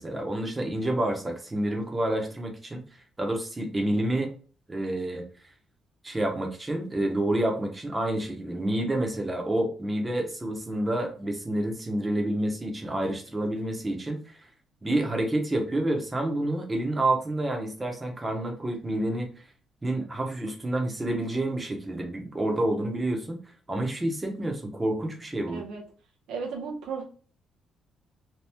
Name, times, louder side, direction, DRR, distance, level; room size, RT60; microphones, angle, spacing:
voice 1, 0.0-2.8 3.2-4.3 4.7-5.2 6.0-14.4 14.8-19.3 19.8-23.4 23.7-25.6, right 1 dB, 20° right, 2 dB, 0.8 m, -28 dB
voice 2, 26.3-27.0, right 5 dB, 85° right, 3 dB, 0.7 m, -34 dB
2.9 x 2.3 x 3.4 m, 0.39 s
cardioid pair, 90°, 0 cm